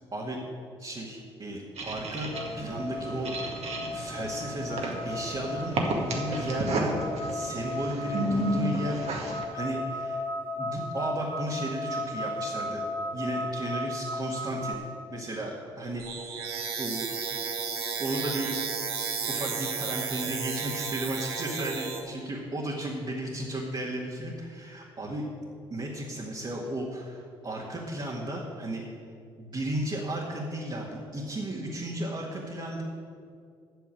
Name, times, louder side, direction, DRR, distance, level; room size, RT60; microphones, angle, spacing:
voice 1, 0.8-3.4 3.9-7.0 7.3-10.2 10.6-12.8 13.1-14.8 15.1-16.5 16.8-17.1 18.0-18.5 19.3-25.3 25.7-28.8 29.4-32.8, right 1 dB, 40° right, -3 dB, 2.0 m, -34 dB
sound 1, 1.8-9.4, right 1 dB, 55° right, 1.9 m, -33 dB
sound 2, 2.3-14.7, left 1 dB, 15° left, 1.6 m, -35 dB
sound 3, 16.0-22.0, right 6 dB, 90° right, 1.1 m, -33 dB
9.5 x 6.9 x 8.7 m, 2.3 s
hypercardioid pair, 50°, 13 cm